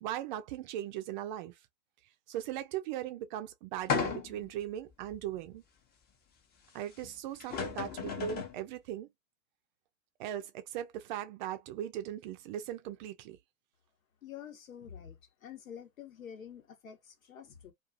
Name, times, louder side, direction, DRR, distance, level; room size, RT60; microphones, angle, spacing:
voice 1, 0.0-1.5 2.3-5.6 6.7-9.1 10.2-13.4, right 11 dB, 35° right, 0.5 m, -38 dB
sound 1, 3.9-4.5 5.1-5.2 7.0-7.1 7.4-8.6, left 7 dB, 25° left, 0.8 m, -34 dB
voice 2, 14.2-17.7, left 8 dB, 75° left, 1.2 m, -48 dB
2.6 x 2.4 x 2.5 m
hypercardioid pair, 110°, 41 cm